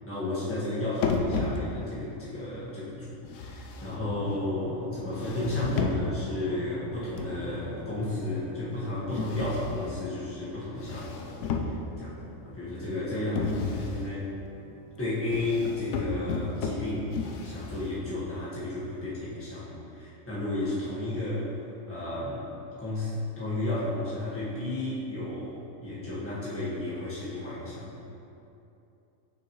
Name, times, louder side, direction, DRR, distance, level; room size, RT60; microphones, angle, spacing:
voice 1, 0.0-11.2 11.6-12.1 12.4-14.3 15.0-21.5 21.8-22.5 22.8-28.0, left 2 dB, 10° left, -10 dB, 1.4 m, -33 dB
sound 1, 1.0-2.0 3.2-4.4 5.1-6.3 7.2-7.6 9.1-10.0 10.7-12.2 13.3-14.1 15.3-18.1, left 4 dB, 70° left, 0.9 m, -33 dB
sound 2, 3.8-13.7, left 2 dB, 70° right, 1.8 m, -42 dB
sound 3, 7.3-17.1, right 1 dB, 25° right, 0.8 m, -50 dB
6.1 x 5.8 x 3.2 m, 2.8 s
omnidirectional pair, 1.4 m